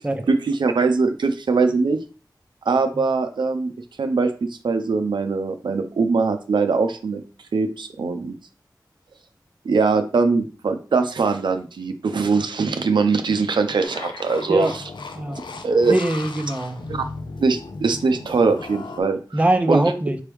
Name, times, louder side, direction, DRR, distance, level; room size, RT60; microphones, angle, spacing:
voice 1, 0.3-2.0 2.7-3.7 4.0-7.2 7.5-8.3 9.6-14.8 15.6-16.0 16.9-17.0 17.4-19.2 19.7-19.8, right 4 dB, 90° right, 7 dB, 0.4 m, -21 dB
sound 1, 13.8-19.0, left 3 dB, 90° left, 0.5 m, -36 dB
voice 2, 15.9-16.8 19.3-20.2, right 1 dB, 20° right, 7 dB, 0.5 m, -22 dB
4.4 x 3.1 x 3.4 m, 0.37 s
wide cardioid pair, 60°, 8 cm